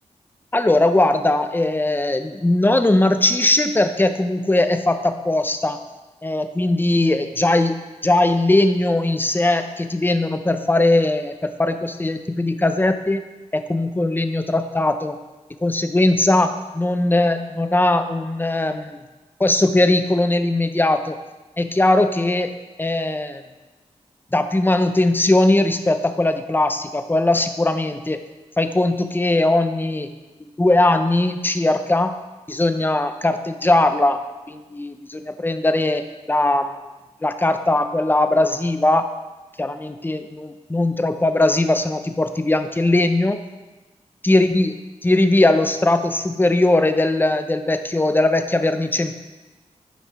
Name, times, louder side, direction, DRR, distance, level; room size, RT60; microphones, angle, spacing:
voice 1, 0.5-5.8 6.2-7.8 8.0-13.2 13.5-15.2 15.6-19.0 19.4-21.2 21.6-22.5 22.8-23.4 24.3-28.2 28.6-30.1 30.4-32.1 32.5-34.2 34.5-36.0 36.3-36.8 37.2-39.0 39.6-43.4 44.2-44.7 45.0-49.1, left 2 dB, 15° left, 8 dB, 0.6 m, -19 dB
9.8 x 5.6 x 3.4 m, 1.2 s
cardioid pair, 70°, 13 cm